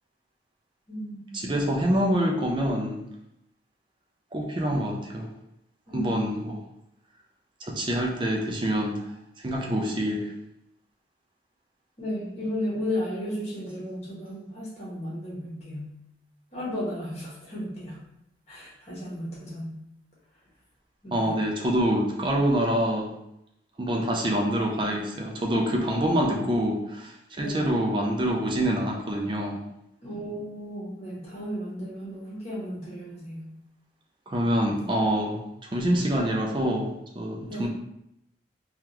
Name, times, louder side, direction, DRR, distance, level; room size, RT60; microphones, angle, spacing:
voice 1, 0.9-1.5 5.9-6.3 12.0-15.9 16.5-18.0 18.5-19.7 21.0-21.4 27.4-27.6 30.0-33.4 37.5-37.7, equal, 35° left, -6 dB, 1.2 m, -34 dB
voice 2, 1.4-3.0 4.3-5.3 5.9-6.5 7.6-9.0 9.4-10.3 21.1-23.1 23.8-29.6 34.3-37.7, equal, 25° right, 0 dB, 0.4 m, -26 dB
3.5 x 2.3 x 2.9 m, 0.82 s
head